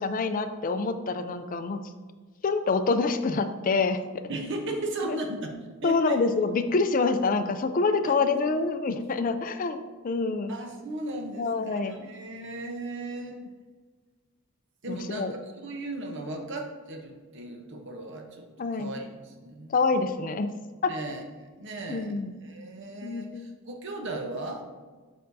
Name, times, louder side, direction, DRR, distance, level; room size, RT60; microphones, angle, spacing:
voice 1, 0.0-1.8 2.4-4.0 5.1-5.2 5.8-10.5 11.4-12.1 14.9-15.3 18.6-18.9 19.7-20.5 20.8-20.9 21.9-22.3 23.0-23.5, left 4 dB, 40° left, 9 dB, 0.4 m, -26 dB
voice 2, 4.3-5.5 5.8-6.2 8.1-8.4 10.5-13.4 14.8-18.5 18.7-19.8 20.9-22.1 22.4-24.6, right 2 dB, 55° right, 3 dB, 0.9 m, -36 dB
6.7 x 6.3 x 2.7 m, 1.4 s
head